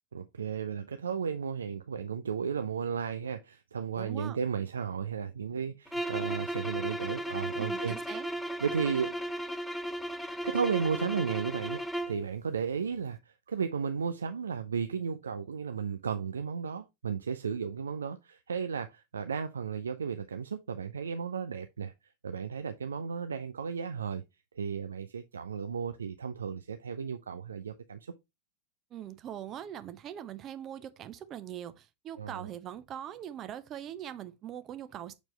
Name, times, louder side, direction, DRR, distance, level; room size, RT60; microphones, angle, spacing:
voice 1, 0.1-7.9 8.6-9.2 10.4-21.9 22.2-24.2 24.5-28.1 32.2-32.5, right 6 dB, 70° right, 0.4 m, -34 dB
voice 2, 4.0-4.4 7.6-8.3 28.9-35.1, right 10 dB, 30° right, 0.8 m, -42 dB
sound 1, 5.9-12.2, right 1 dB, ahead, 0.6 m, -35 dB
7.0 x 4.5 x 3.2 m
figure-of-eight pair, 90°, 0 cm